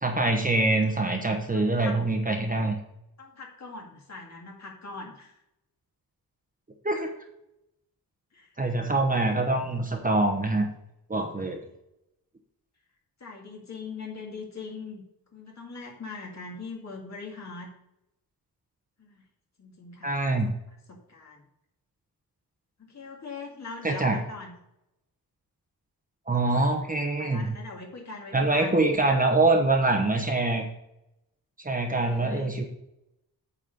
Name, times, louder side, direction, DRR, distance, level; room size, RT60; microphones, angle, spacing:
voice 1, 0.0-2.8 6.8-7.1 8.6-10.7 11.1-11.6 20.0-20.5 23.8-24.2 26.3-27.5 28.3-30.7 31.6-32.6, right 2 dB, 20° right, 3 dB, 1.0 m, -24 dB
voice 2, 1.5-2.0 3.2-5.4 8.3-8.5 13.2-15.0 15.3-17.7 19.0-19.2 19.6-20.2 20.4-20.5 20.9-21.4 22.8-24.6 27.2-28.8 31.9-32.6, left 4 dB, 45° left, -1 dB, 2.2 m, -41 dB
8.9 x 4.3 x 6.5 m, 0.83 s
wide cardioid pair, 155°, 37 cm